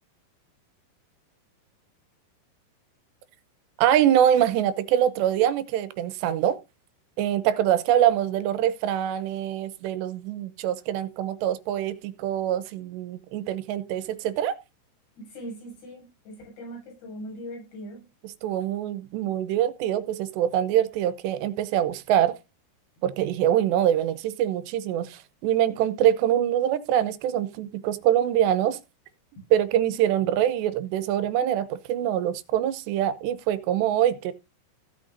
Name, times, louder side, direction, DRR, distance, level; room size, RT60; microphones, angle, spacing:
voice 1, 3.8-6.6 7.2-14.6 18.4-22.4 23.0-28.8 29.5-34.3, right 11 dB, 85° right, 3.1 m, -24 dB
voice 2, 15.2-18.1, equal, 70° left, 9.6 m, -40 dB
15.5 x 8.9 x 2.6 m
omnidirectional pair, 4.9 m